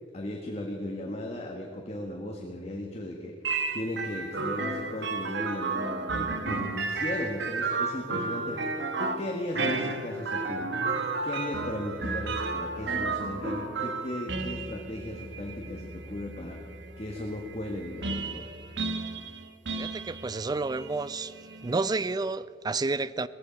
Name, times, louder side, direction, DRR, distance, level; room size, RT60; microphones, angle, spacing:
voice 1, 0.1-3.3 3.7-10.7 11.2-16.6 17.0-18.5, left 1 dB, 35° left, 1 dB, 1.5 m, -36 dB
sound 1, 3.4-22.1, right 3 dB, 70° right, 1.3 m, -33 dB
voice 2, 19.8-21.3 21.6-23.3, right 3 dB, 20° right, 16 dB, 0.4 m, -30 dB
18.5 x 14.5 x 5.3 m, 2.5 s
head